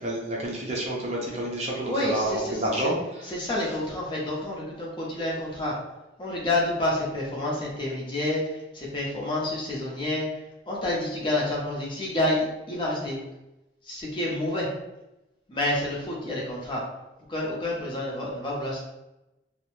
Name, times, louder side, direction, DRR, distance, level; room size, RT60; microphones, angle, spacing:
voice 1, 0.0-3.3, right 1 dB, 35° right, -3 dB, 0.5 m, -29 dB
voice 2, 1.9-2.9 3.2-5.8 6.2-13.2 13.8-14.7 15.5-16.8 17.3-18.8, left 1 dB, 25° left, -4 dB, 0.6 m, -29 dB
2.6 x 2.0 x 3.0 m, 0.96 s
head